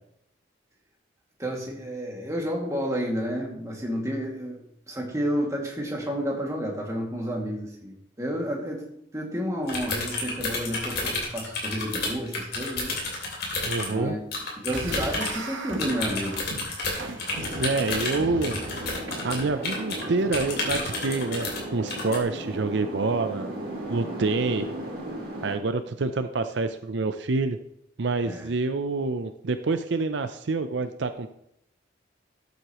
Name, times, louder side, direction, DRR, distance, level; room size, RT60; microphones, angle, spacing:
voice 1, 1.4-4.6 4.9-8.8 9.1-13.0 13.9-14.2 14.6-16.5 28.2-28.5, equal, 15° right, -2 dB, 2.2 m, -30 dB
sound 1, 9.7-13.9 14.3-15.4 15.8-20.0 20.3-21.6 21.9-22.2, left 3 dB, 55° left, 2.9 m, -31 dB
voice 2, 13.6-14.1 17.5-23.5 23.9-24.7 25.4-27.6 28.0-31.3, right 3 dB, 70° right, 9 dB, 0.5 m, -27 dB
sound 2, 14.7-20.5, right 2 dB, 90° right, 1.3 m, -38 dB
sound 3, 17.3-25.6, right 1 dB, 50° right, 3.0 m, -36 dB
13.0 x 8.0 x 3.0 m, 0.76 s
head